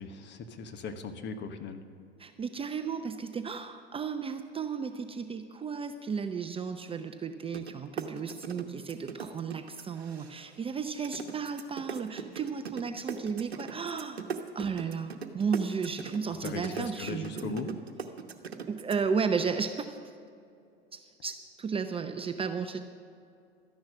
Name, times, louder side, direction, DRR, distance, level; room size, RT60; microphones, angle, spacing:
voice 1, 0.0-1.8 16.3-17.7, left 5 dB, 35° left, 8 dB, 1.2 m, -38 dB
voice 2, 2.2-14.2 14.5-17.6 18.7-20.1 21.2-22.8, right 6 dB, 20° right, 8 dB, 0.6 m, -34 dB
sound 1, 7.5-7.7 8.0-10.6 11.0-18.9, right 6 dB, 85° right, 1.0 m, -39 dB
13.0 x 10.5 x 6.2 m, 2.4 s
hypercardioid pair, 85°, 31 cm